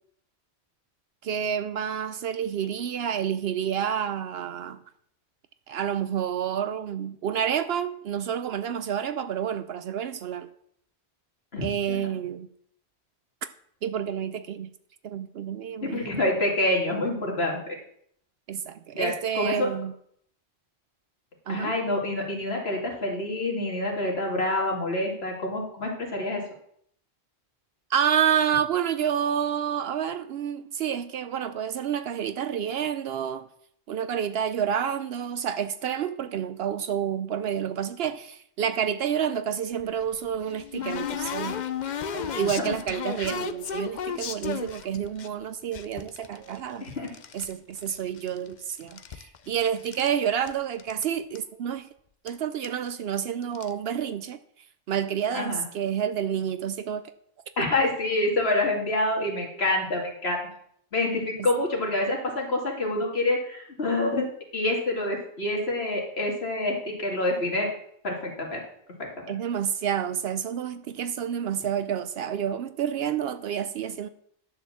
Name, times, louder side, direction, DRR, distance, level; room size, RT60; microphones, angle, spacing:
voice 1, 1.2-4.8 5.7-10.5 11.6-12.5 13.8-14.7 15.0-16.1 18.5-19.9 21.5-21.7 27.9-33.5 33.9-41.6 42.1-46.9 47.3-51.9 52.2-54.4 54.9-57.0 61.4-61.5 69.3-74.1, right 8 dB, 70° right, 0.8 m, -29 dB
voice 2, 11.5-12.1 15.8-17.8 18.9-19.7 21.5-26.4 42.6-42.7 46.8-47.1 55.3-55.6 57.6-60.4 60.9-64.3 64.5-67.7 68.0-68.6 69.0-69.1, left 2 dB, 70° left, 2.6 m, -27 dB
sound 1, 39.8-45.3 45.7-47.5 47.8-48.5 48.8-50.1 50.5-50.6 50.8-51.0 51.3-51.4 52.3-52.4 52.6-52.9 53.4-53.7, left 7 dB, 50° left, 0.7 m, -34 dB
10.5 x 4.7 x 7.1 m
omnidirectional pair, 1.1 m